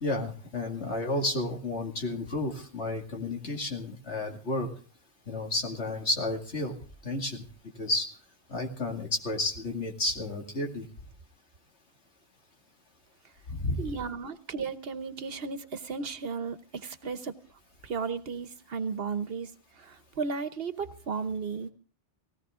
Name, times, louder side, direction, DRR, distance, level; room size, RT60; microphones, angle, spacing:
voice 1, 0.0-4.7 5.3-6.7 7.0-7.4 7.8-8.1 8.5-10.9 13.5-13.9, left 2 dB, 85° left, 2 dB, 2.6 m, -31 dB
voice 2, 13.8-17.3 17.8-21.7, right 5 dB, 65° right, 11 dB, 1.2 m, -34 dB
18.5 x 17.0 x 3.7 m, 0.38 s
omnidirectional pair, 1.1 m